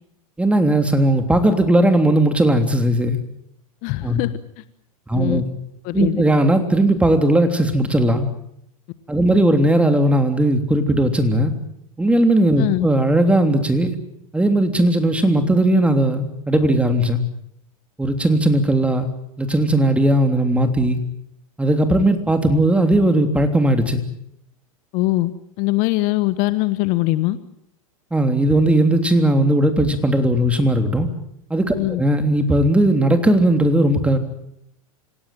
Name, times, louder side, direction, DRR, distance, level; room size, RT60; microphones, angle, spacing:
voice 1, 0.4-3.2 4.0-4.2 5.1-5.4 5.9-8.3 9.1-11.5 12.0-13.9 14.3-17.2 18.0-19.1 19.4-21.0 21.6-24.0 28.1-31.1 31.5-34.2, right 1 dB, 5° right, 7 dB, 3.2 m, -17 dB
voice 2, 3.8-4.3 4.6-4.7 5.1-5.4 5.8-6.2 12.6-12.9 24.9-25.3 25.6-27.4 31.8-32.0, left 18 dB, 45° left, 14 dB, 1.3 m, -21 dB
26.5 x 17.0 x 9.1 m, 0.75 s
hypercardioid pair, 100°, 18 cm